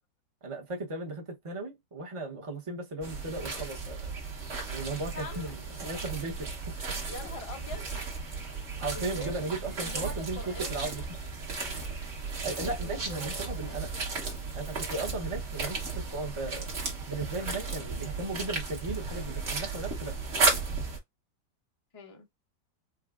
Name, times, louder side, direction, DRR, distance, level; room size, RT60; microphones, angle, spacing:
voice 1, 0.4-4.2 4.7-7.1 8.8-11.0 12.4-13.9 14.5-16.7 17.1-20.2, right 2 dB, 25° right, 0.7 m, -36 dB
sound 1, 3.0-21.0, right 4 dB, 45° right, 1.3 m, -34 dB
voice 2, 5.1-5.5 7.1-7.8 8.9-9.5 9.8-10.7 12.7-13.9 21.9-22.3, left 2 dB, 40° left, 0.5 m, -43 dB
4.7 x 2.3 x 2.4 m
omnidirectional pair, 1.9 m